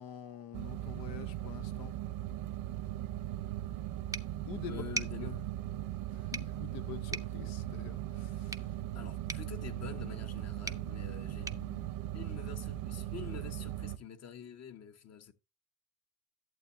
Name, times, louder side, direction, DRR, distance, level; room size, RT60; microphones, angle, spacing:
voice 1, 0.0-1.9 4.4-4.8 6.1-8.7, left 9 dB, 75° left, 1.2 m, -46 dB
sound 1, 0.5-14.0, right 13 dB, 70° right, 1.0 m, -39 dB
sound 2, 4.1-12.8, right 3 dB, 10° right, 0.7 m, -46 dB
voice 2, 4.7-5.5 8.9-15.3, left 7 dB, 45° left, 1.3 m, -47 dB
11.5 x 7.6 x 2.7 m
supercardioid pair, 95°, 36 cm